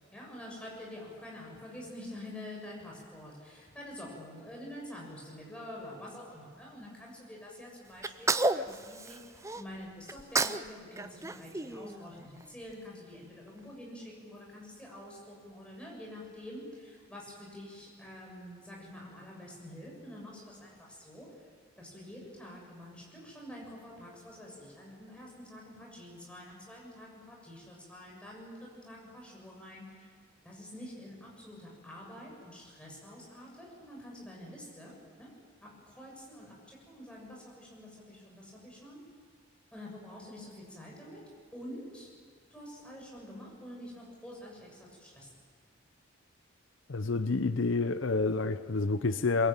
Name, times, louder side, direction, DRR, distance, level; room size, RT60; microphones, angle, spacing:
voice 1, 0.1-21.3 21.8-28.6 28.8-30.1 30.4-35.3 35.6-39.0 39.7-41.2 41.5-42.1 42.5-45.3, left 1 dB, 5° left, -3 dB, 7.1 m, -47 dB
Sneeze, 8.0-9.6 10.1-10.7 11.0-12.4, right 3 dB, 15° right, 0.6 m, -31 dB
voice 2, 46.9-49.5, left 3 dB, 70° left, 11 dB, 0.8 m, -29 dB
22.5 x 22.5 x 9.0 m, 2.1 s
head